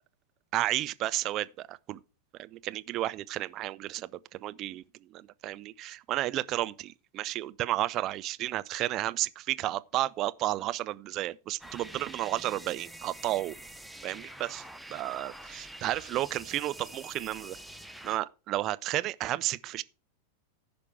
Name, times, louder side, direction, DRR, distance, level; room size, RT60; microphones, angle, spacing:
voice 1, 0.5-2.0 2.4-4.8 5.1-13.5 14.0-14.6 14.9-17.6 18.0-19.8, right 15 dB, 35° right, 0.5 m, -32 dB
sound 1, 11.6-18.2, right 1 dB, ahead, 0.7 m, -46 dB
14.5 x 5.2 x 4.7 m
figure-of-eight pair, 90°, 0 cm